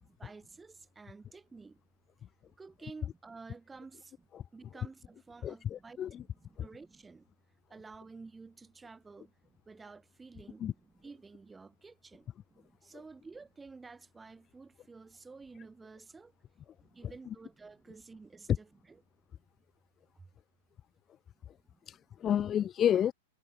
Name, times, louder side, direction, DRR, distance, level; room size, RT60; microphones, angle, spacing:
voice 1, 0.2-1.8 2.6-7.3 7.7-16.3 16.8-19.0 20.2-20.3 21.7-21.8, right 4 dB, 10° right, 7.7 m, -52 dB
voice 2, 5.4-6.2 10.6-10.7 22.2-23.1, left 10 dB, 25° left, 1.2 m, -29 dB
hypercardioid pair, 105°, 0 cm